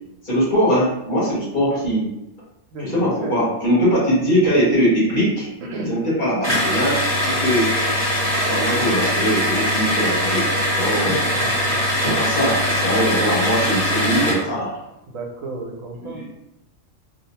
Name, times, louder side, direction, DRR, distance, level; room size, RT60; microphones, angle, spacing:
voice 1, 0.2-2.1 2.8-5.5 5.9-6.9 7.2-7.7 8.5-11.2 12.0-14.8 16.0-16.3, equal, 40° left, -8 dB, 1.1 m, -21 dB
voice 2, 2.7-3.5 5.6-5.9 11.1-11.8 15.1-16.2, right 1 dB, 80° right, 0 dB, 1.0 m, -32 dB
sound 1, 6.4-14.5, equal, 25° right, 0.8 m, -21 dB
2.7 x 2.0 x 2.8 m, 0.89 s
omnidirectional pair, 1.3 m